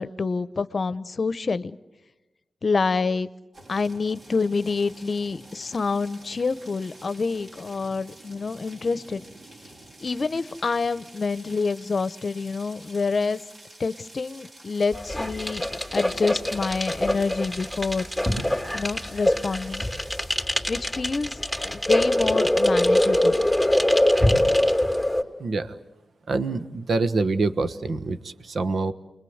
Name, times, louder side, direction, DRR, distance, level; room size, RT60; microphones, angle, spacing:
voice 1, 0.0-1.8 2.6-3.3 3.7-9.2 10.0-13.4 13.8-15.6 15.9-18.1 18.7-19.9 20.7-21.3 21.6-23.4, left 4 dB, 50° left, 16 dB, 0.9 m, -27 dB
sound 1, 3.5-20.4, right 1 dB, 50° right, 4.5 m, -48 dB
sound 2, 14.9-25.2, left 1 dB, 5° right, 3.3 m, -23 dB
voice 2, 25.4-25.7 26.3-28.9, right 3 dB, 65° right, 11 dB, 1.3 m, -26 dB
29.0 x 21.5 x 8.0 m, 1.1 s
cardioid pair, 55°, 0 cm